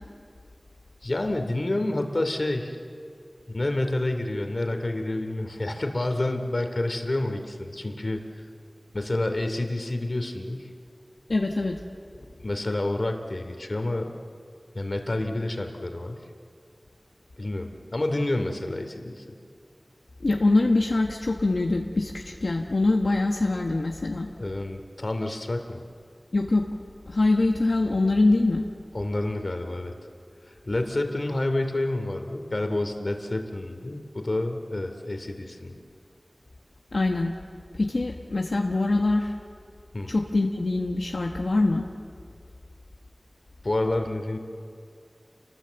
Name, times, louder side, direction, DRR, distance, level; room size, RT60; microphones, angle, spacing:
voice 1, 1.0-2.8 3.5-8.5 8.9-10.7 12.2-14.1 14.7-16.2 17.4-19.2 24.4-25.8 28.9-29.9 30.5-35.8 39.9-40.1 43.6-44.4, left 2 dB, 55° left, 5 dB, 2.7 m, -29 dB
voice 2, 11.3-11.7 20.2-24.3 26.3-26.6 27.1-28.6 36.9-37.3 37.8-39.3 40.1-41.9, left 2 dB, 85° left, 1 dB, 1.4 m, -23 dB
29.0 x 20.0 x 8.2 m, 2.3 s
wide cardioid pair, 55°, 0 cm